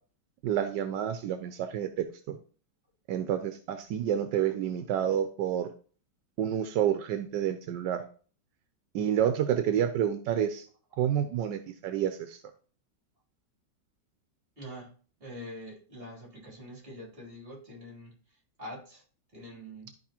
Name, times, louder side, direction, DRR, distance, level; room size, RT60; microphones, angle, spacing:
voice 1, 0.4-2.3 3.1-5.7 6.4-8.0 8.9-10.6 11.0-12.4, right 10 dB, 80° right, 8 dB, 1.3 m, -29 dB
voice 2, 14.6-19.0 19.3-19.9, equal, 30° right, -3 dB, 3.3 m, -45 dB
12.0 x 4.8 x 2.9 m, 0.41 s
omnidirectional pair, 1.9 m